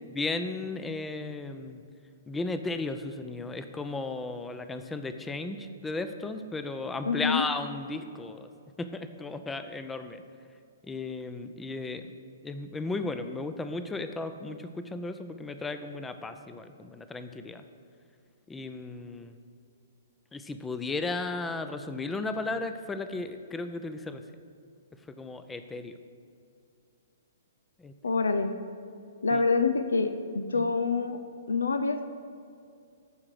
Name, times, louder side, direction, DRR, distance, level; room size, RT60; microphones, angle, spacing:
voice 1, 0.1-1.8 2.3-8.5 8.8-10.2 10.9-12.0 12.4-17.6 18.5-19.3 20.3-24.2 25.1-26.0 27.8-27.9 29.3-29.4 30.6-30.7, left 3 dB, 10° left, 9 dB, 0.6 m, -35 dB
voice 2, 7.1-7.5 28.0-28.5 29.2-31.2 31.5-32.1, left 4 dB, 80° left, 9 dB, 0.6 m, -26 dB
13.5 x 4.9 x 6.6 m, 2.4 s
figure-of-eight pair, 125°, 0 cm